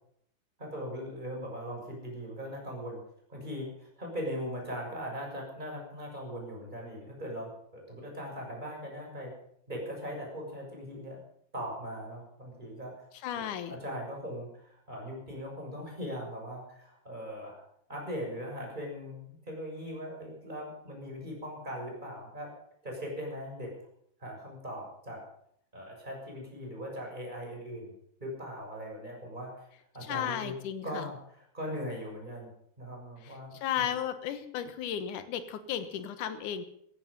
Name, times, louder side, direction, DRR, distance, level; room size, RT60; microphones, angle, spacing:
voice 1, 0.6-3.0 3.3-9.3 9.7-11.2 11.5-13.1 13.3-17.6 17.9-22.5 22.8-23.7 24.2-25.2 25.7-27.9 28.2-29.7 29.9-30.6 30.8-32.5 32.8-33.9, equal, 10° right, -1 dB, 6.3 m, -40 dB
voice 2, 13.2-13.8 30.1-31.1 33.2-33.3 33.6-36.6, left 9 dB, 65° left, 10 dB, 2.3 m, -34 dB
17.0 x 15.0 x 5.4 m, 0.70 s
omnidirectional pair, 4.8 m